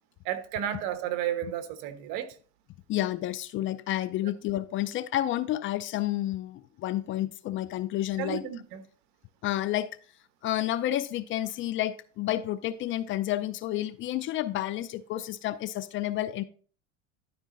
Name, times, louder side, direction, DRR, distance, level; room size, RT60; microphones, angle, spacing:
voice 1, 0.2-2.3 8.2-8.8, right 10 dB, 60° right, 1.2 m, -32 dB
voice 2, 2.9-8.4 9.4-9.9 10.4-16.4, left 13 dB, 35° left, 0.5 m, -30 dB
11.5 x 4.9 x 3.8 m
supercardioid pair, 125°, 35 cm